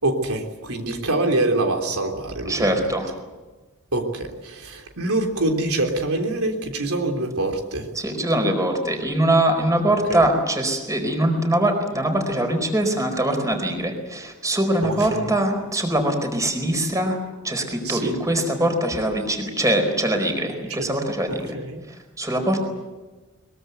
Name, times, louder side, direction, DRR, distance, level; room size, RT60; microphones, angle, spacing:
voice 1, 0.0-2.8 3.9-7.9 10.1-10.2 14.8-15.3 17.8-18.1 21.5-21.8, right 2 dB, 80° right, 3 dB, 3.4 m, -25 dB
voice 2, 2.5-3.1 7.9-21.6 21.9-22.7, right 1 dB, 15° right, 5 dB, 4.6 m, -22 dB
23.0 x 22.0 x 8.1 m, 1.2 s
head